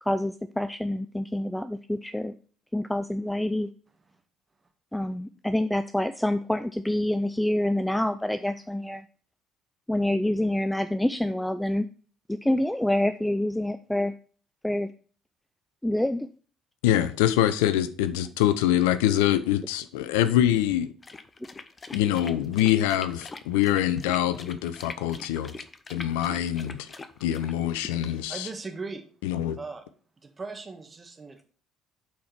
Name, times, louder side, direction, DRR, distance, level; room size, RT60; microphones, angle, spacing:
voice 1, 0.0-2.3 2.7-3.7 4.9-9.1 9.9-11.9 12.3-14.1 14.6-14.9 15.8-16.3, left 1 dB, 5° left, 0.4 m, -27 dB
voice 2, 16.8-20.9 21.9-25.5 25.9-26.9 27.2-28.5 29.2-29.6, left 12 dB, 75° left, 0.4 m, -24 dB
sound 1, 21.0-28.3, left 3 dB, 30° left, 0.8 m, -43 dB
voice 3, 28.1-29.0 29.6-29.8 30.2-31.4, right 4 dB, 30° right, 1.5 m, -38 dB
8.2 x 4.4 x 4.4 m
hypercardioid pair, 50°, 0 cm